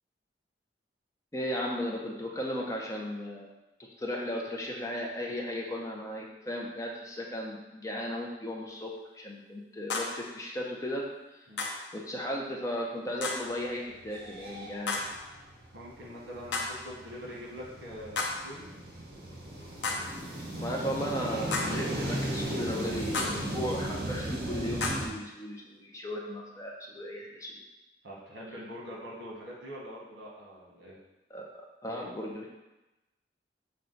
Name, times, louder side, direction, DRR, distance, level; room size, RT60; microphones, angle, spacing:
voice 1, 1.3-3.5 4.0-11.1 11.3-11.4 11.9-15.0 20.6-27.6 31.3-32.5, equal, 15° left, -1 dB, 0.5 m, -36 dB
sound 1, 9.9-10.3 11.6-11.9 13.2-13.6 14.9-15.2 16.5-16.9 18.2-18.5 19.8-20.2 21.5-21.9 23.1-23.5 24.8-25.2, left 3 dB, 80° left, 0.6 m, -33 dB
sound 2, 13.5-13.6 14.0-25.1, right 1 dB, 60° right, 0.8 m, -36 dB
voice 2, 15.7-18.6 28.0-31.0, equal, 75° right, -4 dB, 1.2 m, -44 dB
5.6 x 2.3 x 3.8 m, 1.0 s
head